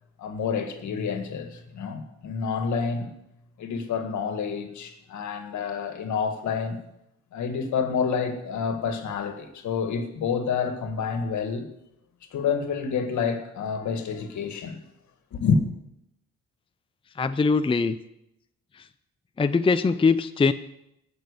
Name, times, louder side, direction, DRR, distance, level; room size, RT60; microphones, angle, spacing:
voice 1, 0.2-3.1 3.6-6.8 7.3-11.7 12.3-14.8 15.3-15.6, left 6 dB, 70° left, 1.9 m, -28 dB
voice 2, 17.2-18.0 19.4-20.5, left 4 dB, 20° left, 0.5 m, -22 dB
17.5 x 6.3 x 6.7 m
cardioid pair, 90°, 30 cm